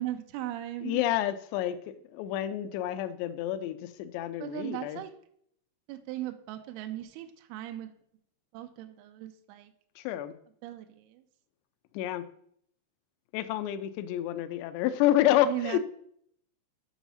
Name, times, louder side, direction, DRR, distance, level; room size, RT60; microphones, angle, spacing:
voice 1, 0.0-1.1 4.4-5.1 5.9-7.9 8.5-9.7 10.6-11.3 15.4-15.8, right 13 dB, 80° right, 7 dB, 2.4 m, -37 dB
voice 2, 0.8-1.8 2.1-5.0 10.0-10.3 11.9-12.2 13.3-15.8, left 13 dB, 80° left, 11 dB, 2.8 m, -29 dB
7.2 x 6.1 x 5.6 m, 0.67 s
omnidirectional pair, 5.1 m